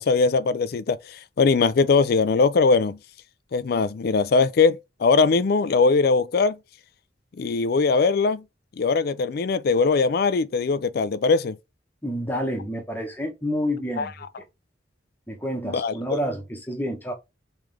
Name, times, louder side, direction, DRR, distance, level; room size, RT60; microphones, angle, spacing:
voice 1, 0.0-3.0 3.5-6.6 7.4-8.4 8.8-11.6 14.0-14.1 15.6-15.9, left 4 dB, 50° left, 0.4 m, -21 dB
voice 2, 12.0-14.1 15.3-17.1, equal, 10° left, 0.9 m, -29 dB
3.6 x 3.2 x 3.2 m
head